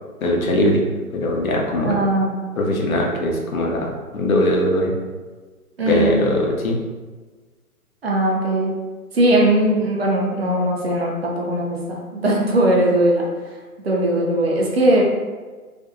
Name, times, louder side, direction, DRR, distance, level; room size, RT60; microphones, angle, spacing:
voice 1, 0.2-0.8 1.1-1.9 2.6-4.9 5.9-6.8, left 1 dB, 65° left, 0 dB, 0.6 m, -20 dB
voice 2, 1.8-2.4 5.8-6.2 8.0-8.7 9.1-13.2 13.8-15.0, right 1 dB, 45° right, -2 dB, 0.5 m, -19 dB
2.6 x 2.1 x 2.5 m, 1.4 s
figure-of-eight pair, 135°, 45 cm